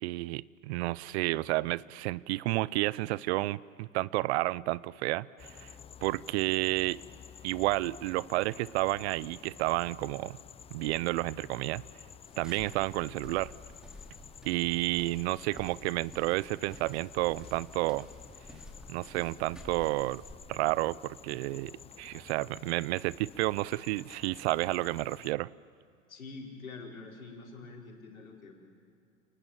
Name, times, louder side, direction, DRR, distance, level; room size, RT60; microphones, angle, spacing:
voice 1, 0.0-5.7 6.0-7.0 7.4-10.4 10.7-11.8 12.4-13.5 14.4-18.1 18.9-20.2 20.5-25.5, right 19 dB, 55° right, 22 dB, 0.6 m, -31 dB
sound 1, 5.4-25.3, left 8 dB, 15° left, 0.5 m, -51 dB
sound 2, 12.2-20.3, left 1 dB, ahead, 3.0 m, -52 dB
voice 2, 26.1-28.5, left 3 dB, 90° left, -1 dB, 4.9 m, -46 dB
29.5 x 19.5 x 7.4 m, 2.5 s
hypercardioid pair, 95°, 40 cm